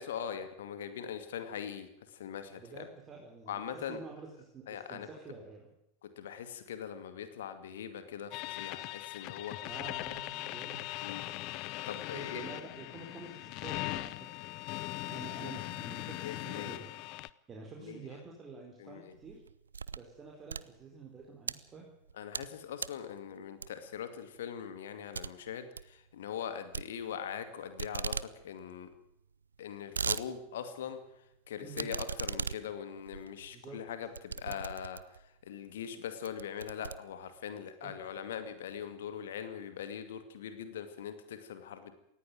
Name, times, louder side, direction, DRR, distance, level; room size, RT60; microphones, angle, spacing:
voice 1, 0.0-1.9 2.2-2.8 3.5-4.0 4.7-5.1 6.2-9.5 11.0-11.2 11.9-12.4 15.4-15.5 16.2-16.8 17.9-18.0 18.8-19.0 22.2-25.6 26.1-28.2 28.4-28.9 29.6-31.0 31.5-35.0 35.5-41.9, left 8 dB, 60° left, 10 dB, 2.4 m, -41 dB
voice 2, 2.5-5.7 9.6-10.9 12.1-14.4 15.0-16.9 17.5-19.4 19.9-21.9 31.6-31.9 33.5-33.8 34.5-34.6 37.8-37.9, right 4 dB, 20° right, 0 dB, 4.4 m, -49 dB
sound 1, 8.3-17.3, left 19 dB, 40° left, 0.7 m, -40 dB
sound 2, 19.1-20.1 20.4-21.6 22.1-22.5 22.8-23.1 23.6-24.0 24.4-24.5 24.8-24.9 25.1-25.3 25.6-25.9 26.7-27.5 27.8-28.3 28.6-28.7 28.9-29.0 29.5-30.3 30.7-30.8 31.7-35.3 35.8-35.9 36.3-37.5, right 5 dB, 75° right, 0.7 m, -38 dB
18.5 x 16.0 x 9.5 m, 0.81 s
figure-of-eight pair, 90°, 0 cm